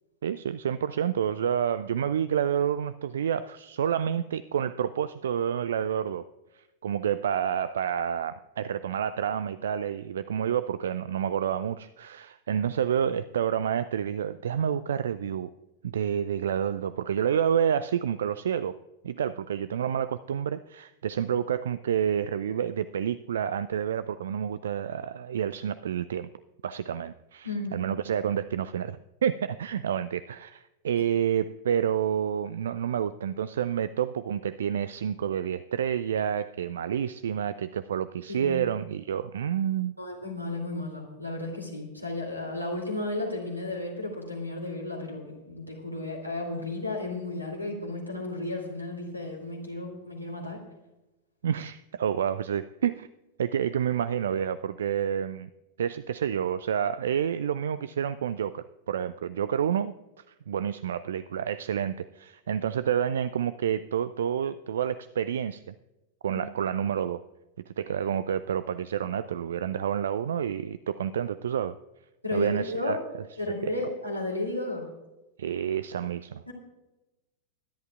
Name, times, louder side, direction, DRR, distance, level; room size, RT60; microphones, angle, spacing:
voice 1, 0.2-6.3 6.5-15.5 15.8-18.7 19.0-26.3 26.6-40.0 51.4-53.1 53.4-55.5 55.8-59.9 60.5-65.7 66.2-67.2 67.7-71.8 72.3-73.0 73.6-73.7 75.4-76.4, right 8 dB, 65° right, 15 dB, 0.3 m, -29 dB
voice 2, 27.4-27.8 38.3-38.6 40.0-50.6 66.3-66.4 72.2-73.0 73.4-74.9 76.5-76.6, left 2 dB, 90° right, 2 dB, 2.7 m, -33 dB
23.0 x 11.0 x 2.4 m, 1.0 s
figure-of-eight pair, 90°, 0 cm